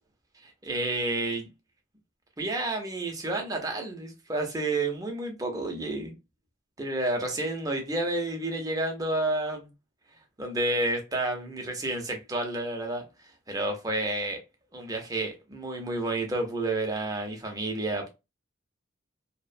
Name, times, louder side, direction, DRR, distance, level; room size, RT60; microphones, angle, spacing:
voice 1, 0.4-1.5 2.4-6.1 6.8-9.7 10.4-13.0 13.5-14.4 14.7-18.1, right 2 dB, 20° right, 0.5 m, -30 dB
2.4 x 2.1 x 2.4 m
head